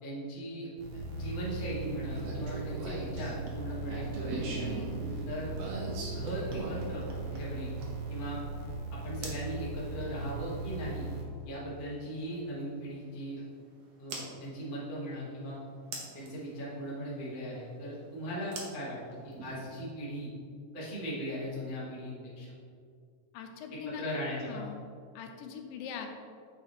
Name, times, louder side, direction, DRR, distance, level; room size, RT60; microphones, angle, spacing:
voice 1, 0.0-4.8 5.3-5.6 6.1-7.0 7.3-7.7 8.1-8.4 9.0-11.1 11.4-13.4 14.0-15.6 16.1-19.0 19.2-20.3 20.7-22.5 23.8-24.6, equal, 65° left, -7 dB, 0.5 m, -38 dB
sound 1, 0.8-11.2, right 3 dB, 85° right, 2.7 m, -38 dB
sound 2, 2.1-8.1 9.2-9.5 11.4-11.5 14.1-14.3 15.9-16.3 18.5-19.5, right 2 dB, 65° right, 1.7 m, -40 dB
voice 2, 23.3-24.0 24.5-24.8 25.2-26.1, left 7 dB, 90° left, 4 dB, 2.3 m, -41 dB
7.8 x 4.9 x 3.1 m, 2.2 s
omnidirectional pair, 3.9 m